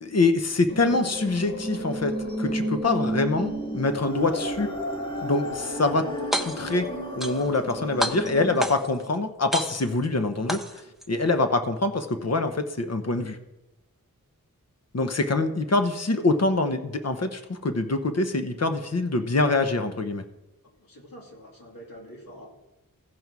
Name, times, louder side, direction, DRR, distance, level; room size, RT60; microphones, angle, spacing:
voice 1, 0.0-2.1 2.4-4.7 5.2-6.1 6.4-10.8 11.1-13.4 14.9-20.2, left 3 dB, 45° left, 8 dB, 0.9 m, -25 dB
sound 1, 0.7-8.7, right 1 dB, 15° left, 2.9 m, -32 dB
sound 2, 6.2-6.8 7.2-7.7 8.0-9.0 9.5-10.1 10.5-11.1, equal, ahead, 0.9 m, -30 dB
voice 2, 20.8-22.5, equal, 70° left, -1 dB, 2.8 m, -46 dB
16.0 x 5.4 x 4.7 m, 0.98 s
wide cardioid pair, 55°, 35 cm